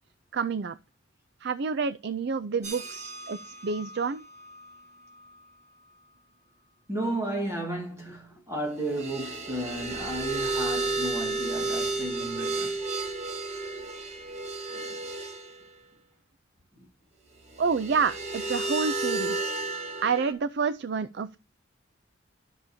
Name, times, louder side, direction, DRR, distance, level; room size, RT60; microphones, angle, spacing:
voice 1, 0.3-0.8 1.4-4.2 17.6-19.5 20.0-21.4, right 5 dB, 55° right, 0.4 m, -29 dB
sound 1, 2.6-4.8 5.2-5.3 8.9-15.6 17.6-20.3, right 3 dB, 35° right, 1.2 m, -33 dB
voice 2, 6.9-12.7 14.7-15.0 16.7-16.8, right 1 dB, 15° right, 2.0 m, -33 dB
12.5 x 6.6 x 2.8 m
head